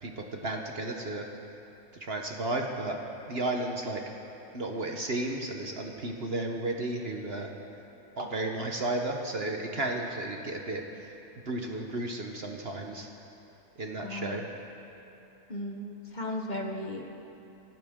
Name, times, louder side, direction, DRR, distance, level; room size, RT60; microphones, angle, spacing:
voice 1, 0.0-1.3 1.9-3.0 3.3-4.0 4.5-7.5 8.2-11.2 11.5-13.1 13.8-14.5, right 2 dB, 45° right, 2 dB, 1.1 m, -33 dB
voice 2, 14.0-14.5 15.5-17.1, left 1 dB, 35° left, 2 dB, 1.0 m, -36 dB
26.0 x 12.0 x 3.7 m, 2.9 s
omnidirectional pair, 1.7 m